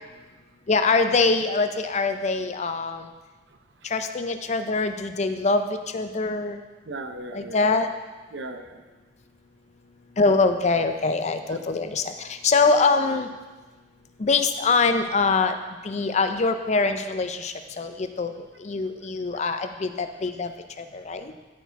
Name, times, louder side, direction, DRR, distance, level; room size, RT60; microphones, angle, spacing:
voice 1, 0.7-3.1 3.8-6.6 7.3-7.9 10.2-13.3 14.2-15.6 15.8-18.3 18.6-20.5 20.8-21.3, left 4 dB, 40° left, 8 dB, 0.5 m, -24 dB
voice 2, 3.5-3.9 6.8-7.9 8.3-8.8 11.5-11.6 19.3-19.4 20.3-20.4 20.9-21.4, right 2 dB, 75° right, 6 dB, 0.8 m, -39 dB
13.0 x 4.7 x 4.6 m, 1.3 s
head